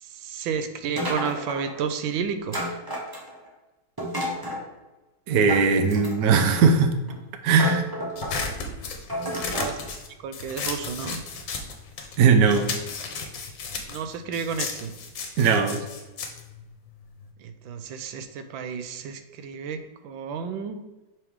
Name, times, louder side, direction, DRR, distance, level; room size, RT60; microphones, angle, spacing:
voice 1, 0.0-2.7 9.5-9.8 10.2-11.2 13.9-14.9 17.4-20.8, right 6 dB, 85° right, 9 dB, 1.4 m, -31 dB
sound 1, 1.0-1.8 2.5-3.5 4.0-4.6 5.5-6.4 7.1-7.2 7.5-8.4 9.1-9.8, equal, 15° right, 0.9 m, -31 dB
voice 2, 5.3-6.9 7.4-7.8 12.2-12.7 15.4-15.8, right 5 dB, 65° right, 7 dB, 1.1 m, -19 dB
sound 2, 8.2-12.2 12.5-17.3, left 5 dB, 75° left, 1.6 m, -34 dB
5.9 x 4.7 x 3.6 m, 1.1 s
omnidirectional pair, 2.1 m